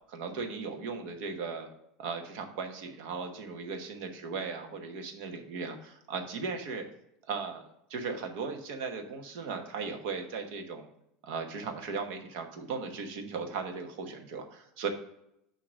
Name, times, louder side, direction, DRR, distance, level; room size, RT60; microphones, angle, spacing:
voice 1, 0.1-1.7 2.0-6.8 7.3-7.6 7.9-10.9 11.2-14.9, right 4 dB, 60° right, 4 dB, 1.1 m, -37 dB
8.7 x 2.9 x 6.2 m, 0.80 s
supercardioid pair, 165°, 0 cm